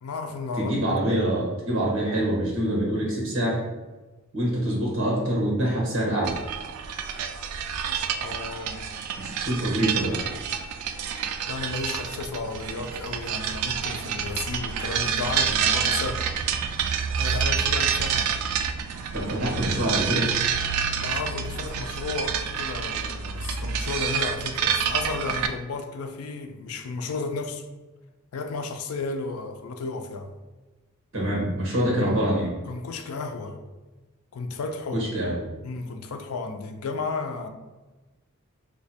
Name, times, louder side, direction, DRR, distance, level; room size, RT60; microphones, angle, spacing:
voice 1, 0.0-0.9 8.2-8.9 11.5-16.2 17.2-18.4 21.0-27.6 28.3-30.3 31.2-31.9 32.7-33.6 34.3-35.3 35.6-37.5, left 3 dB, 85° left, 0.4 m, -33 dB
voice 2, 0.6-3.6 4.3-6.4 9.2-10.2 19.1-20.3 31.1-32.5 34.9-35.4, right 1 dB, 65° right, 1.2 m, -25 dB
sound 1, 6.2-25.5, right 7 dB, 90° right, 0.3 m, -28 dB
2.8 x 2.2 x 4.2 m
head